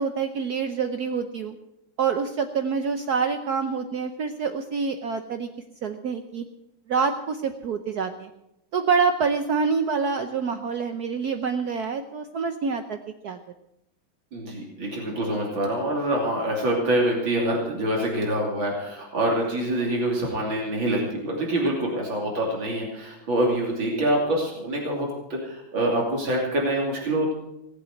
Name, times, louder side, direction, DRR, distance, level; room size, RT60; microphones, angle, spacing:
voice 1, 0.0-1.6 2.0-5.5 5.8-6.4 6.9-8.3 8.7-13.0 13.2-13.4, right 5 dB, 60° right, 7 dB, 1.2 m, -26 dB
voice 2, 14.3-27.3, right 1 dB, 75° right, -2 dB, 3.7 m, -25 dB
18.5 x 8.1 x 7.8 m, 0.86 s
omnidirectional pair, 2.2 m